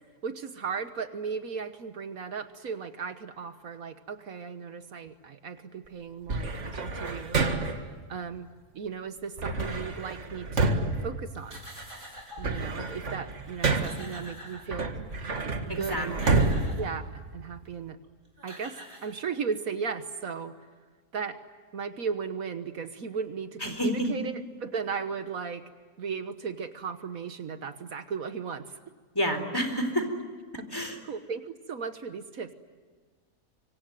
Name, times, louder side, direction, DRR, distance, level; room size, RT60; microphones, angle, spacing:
voice 1, 0.2-11.6 12.4-15.0 15.6-16.2 16.8-18.0 18.4-20.6 21.1-21.4 21.7-25.7 26.0-28.8 30.6-30.7 31.0-32.5, right 6 dB, 70° right, 9 dB, 1.6 m, -36 dB
sound 1, 6.3-7.9 9.4-11.8 12.2-14.1 14.7-17.7, right 3 dB, 50° right, 2.2 m, -29 dB
sound 2, 11.3-12.7 13.3-13.4 13.6-15.2 15.9-17.0 18.0-18.1 18.4-19.6, equal, 35° right, 5.0 m, -46 dB
voice 2, 15.7-16.4 23.6-24.1 29.1-30.1 30.5-31.0, equal, 15° left, 6 dB, 4.1 m, -29 dB
25.5 x 24.5 x 9.4 m, 1.5 s
omnidirectional pair, 1.6 m